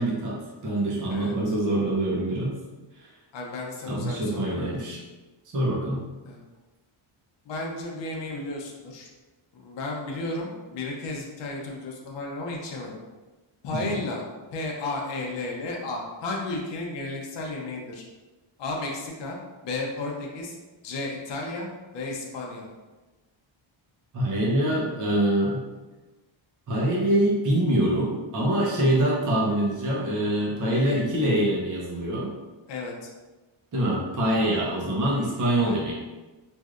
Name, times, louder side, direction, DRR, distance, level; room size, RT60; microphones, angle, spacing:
voice 1, 0.0-2.6 3.0-3.1 3.9-5.0 5.5-6.0 13.7-14.0 24.1-25.6 26.7-32.3 33.7-35.9, right 1 dB, 40° right, -5 dB, 0.8 m, -25 dB
voice 2, 1.1-1.5 3.3-4.6 6.3-6.4 7.5-9.1 9.5-13.0 13.6-14.2 14.5-18.0 18.6-19.4 19.6-20.6 20.8-21.7 21.9-22.7 32.7-33.1 35.6-35.7, left 2 dB, 60° left, -1 dB, 0.7 m, -33 dB
3.2 x 2.6 x 2.4 m, 1.2 s
wide cardioid pair, 175°, 48 cm